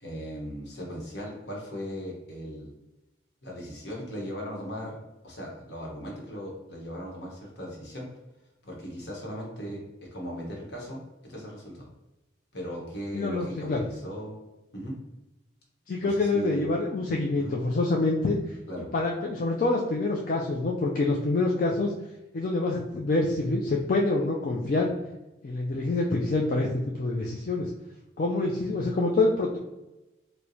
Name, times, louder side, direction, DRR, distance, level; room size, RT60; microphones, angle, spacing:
voice 1, 0.0-2.7 3.4-5.0 5.2-8.0 8.6-9.8 10.1-11.9 12.5-14.3 14.7-15.0 16.0-16.7 17.3-17.5 18.7-18.9, equal, 65° left, -2 dB, 1.1 m, -38 dB
voice 2, 13.1-13.8 15.9-21.9 22.3-24.9 25.4-27.7 28.2-29.6, left 2 dB, 45° left, -1 dB, 0.3 m, -26 dB
4.4 x 2.1 x 2.7 m, 1.0 s
head